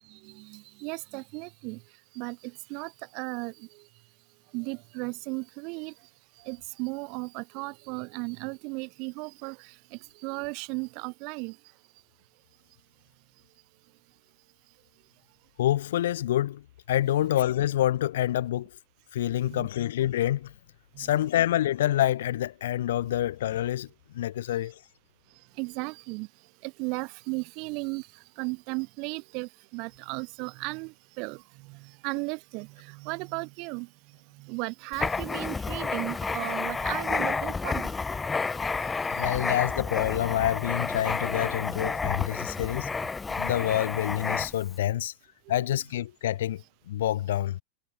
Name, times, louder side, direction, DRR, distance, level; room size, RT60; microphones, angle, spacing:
voice 1, 0.1-1.8 2.1-2.4 2.7-3.5 4.5-5.9 6.4-11.6 19.5-19.7 21.0-21.1 25.6-26.3 26.6-28.1 28.4-31.4 31.7-31.8 32.0-33.9 34.4-37.9 45.6-45.7, right 31 dB, 45° right, 0.6 m, -35 dB
voice 2, 15.6-18.7 19.1-20.5 21.0-23.9 24.1-24.8 39.1-42.9 43.4-45.1 45.5-47.6, left 12 dB, 60° left, 0.7 m, -27 dB
Writing, 34.9-44.7, left 4 dB, 15° left, 0.5 m, -30 dB
figure-of-eight pair, 90°, 0 cm